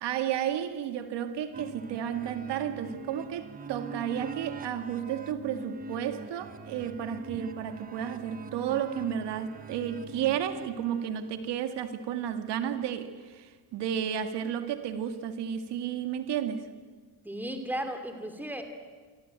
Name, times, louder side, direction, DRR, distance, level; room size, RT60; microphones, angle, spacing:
voice 1, 0.0-16.7, right 9 dB, 80° right, 8 dB, 2.1 m, -32 dB
sound 1, 1.5-11.3, right 3 dB, 20° right, 1.1 m, -43 dB
voice 2, 17.2-18.6, right 1 dB, 5° right, 6 dB, 2.9 m, -35 dB
25.5 x 25.0 x 9.0 m, 1.4 s
cardioid pair, 170°, 41 cm